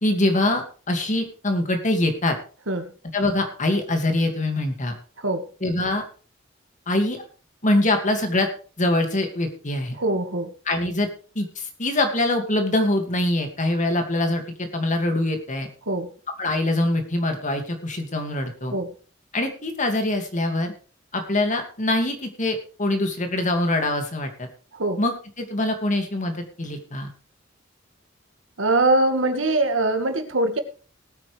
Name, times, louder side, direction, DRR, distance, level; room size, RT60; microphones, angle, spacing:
voice 1, 0.0-2.4 3.1-4.9 5.6-6.0 6.9-7.2 7.6-8.5 8.8-10.0 10.7-11.1 11.3-15.7 16.4-18.7 19.3-20.7 21.1-24.5 25.0-27.1, left 1 dB, 40° left, 5 dB, 2.4 m, -24 dB
voice 2, 10.0-10.5 15.9-16.1 18.7-18.9 24.7-25.0 28.6-30.6, right 2 dB, 80° right, 6 dB, 1.9 m, -22 dB
19.0 x 8.8 x 3.4 m, 0.38 s
head